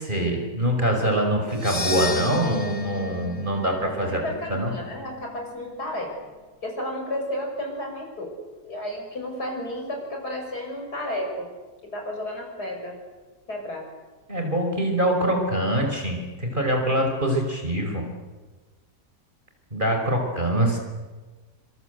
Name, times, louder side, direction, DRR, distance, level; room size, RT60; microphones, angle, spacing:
voice 1, 0.0-4.2 4.5-4.7 14.3-18.1 19.7-20.8, right 1 dB, 30° right, 2 dB, 5.4 m, -24 dB
sound 1, 1.5-5.8, left 3 dB, 40° left, 3.0 m, -34 dB
voice 2, 4.2-6.3 6.6-8.3 8.6-11.5 11.9-13.0 13.5-13.8, left 1 dB, 65° left, 1 dB, 7.3 m, -32 dB
27.5 x 26.0 x 8.2 m, 1.3 s
omnidirectional pair, 1.8 m